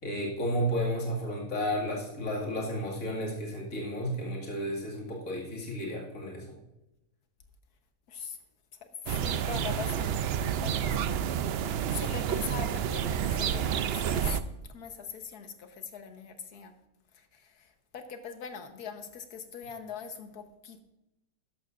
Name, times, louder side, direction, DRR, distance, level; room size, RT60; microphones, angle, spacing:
voice 1, 0.0-6.4, equal, 60° left, -2 dB, 2.5 m, -32 dB
voice 2, 9.1-10.2 10.6-11.0 11.5-14.4 14.7-16.7 17.1-20.8, left 6 dB, 80° left, 7 dB, 1.6 m, -42 dB
sound 1, 9.1-14.4, right 8 dB, 75° right, 0.5 m, -29 dB
13.5 x 11.0 x 2.5 m, 0.94 s
omnidirectional pair, 1.6 m